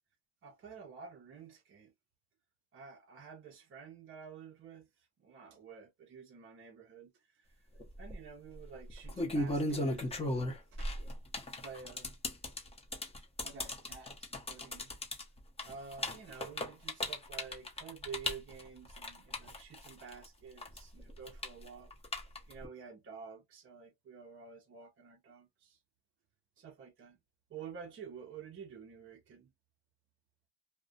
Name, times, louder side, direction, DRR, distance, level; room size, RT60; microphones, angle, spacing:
voice 1, 0.4-1.9 2.7-4.9 5.2-7.5 8.0-10.9 11.6-12.4 13.4-14.9 15.6-21.9 22.5-25.8 26.6-27.2 27.5-29.5, right 6 dB, 30° right, 0.5 m, -50 dB
sound 1, 7.8-8.1 8.9-20.3 20.6-22.7, left 1 dB, 15° left, 0.6 m, -36 dB
2.3 x 2.1 x 2.5 m
cardioid pair, 115°, 45 cm